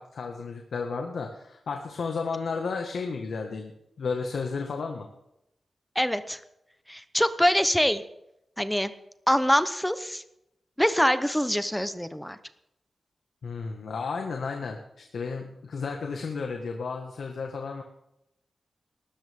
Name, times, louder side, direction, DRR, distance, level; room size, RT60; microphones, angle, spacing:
voice 1, 0.0-3.7 4.0-5.1 13.4-17.8, left 4 dB, 85° left, 3 dB, 1.8 m, -33 dB
voice 2, 6.0-6.4 6.9-8.0 8.6-8.9 9.3-10.2 10.8-12.4, equal, 5° left, 11 dB, 0.8 m, -24 dB
20.0 x 13.0 x 3.7 m, 0.83 s
wide cardioid pair, 160°, 0 cm